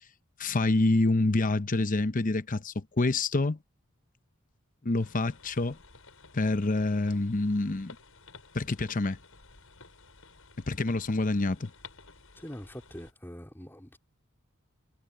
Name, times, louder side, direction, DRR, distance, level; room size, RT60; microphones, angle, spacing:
voice 1, 0.4-3.6 4.8-5.8 6.3-8.0 8.5-9.2 10.7-11.7, left 2 dB, 40° left, 0.8 m, -27 dB
sound 1, 5.0-13.1, left 4 dB, 80° left, 7.1 m, -54 dB
voice 2, 12.3-14.0, equal, 10° left, 3.9 m, -43 dB
head